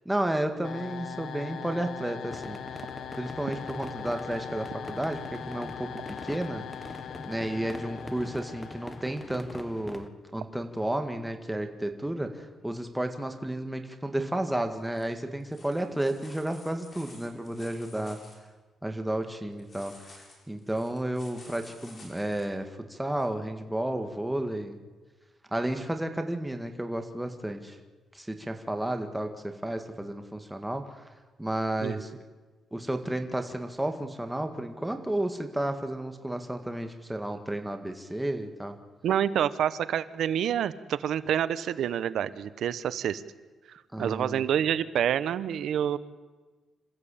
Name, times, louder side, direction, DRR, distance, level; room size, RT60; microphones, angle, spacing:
voice 1, 0.1-2.8 3.2-6.7 7.3-10.1 10.3-18.2 18.8-20.1 20.5-24.8 25.5-27.8 28.1-31.1 31.4-32.1 32.7-38.8 43.9-44.4, right 1 dB, 5° right, 6 dB, 2.1 m, -32 dB
sound 1, 0.6-9.6, left 9 dB, 75° left, 0.9 m, -41 dB
sound 2, 2.3-10.1, left 2 dB, 15° left, 1.5 m, -43 dB
sound 3, 14.8-15.0 15.4-18.4 19.6-22.5 23.2-23.3, left 2 dB, 40° left, 6.3 m, -52 dB
voice 2, 39.0-43.2 44.0-46.0, right 9 dB, 80° right, 15 dB, 1.0 m, -27 dB
27.0 x 14.5 x 8.6 m, 1.3 s
cardioid pair, 95°, 0 cm